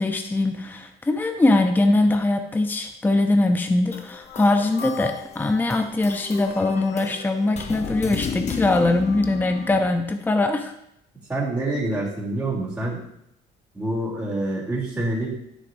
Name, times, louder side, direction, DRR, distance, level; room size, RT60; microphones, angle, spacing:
voice 1, 0.0-10.7, left 2 dB, 10° left, 6 dB, 0.6 m, -22 dB
sound 1, 3.9-9.9, left 6 dB, 40° left, 1.0 m, -33 dB
voice 2, 11.3-13.0 13.7-15.3, right 2 dB, 10° right, -8 dB, 3.2 m, -26 dB
10.5 x 6.5 x 2.7 m, 0.77 s
cardioid pair, 110°, 17 cm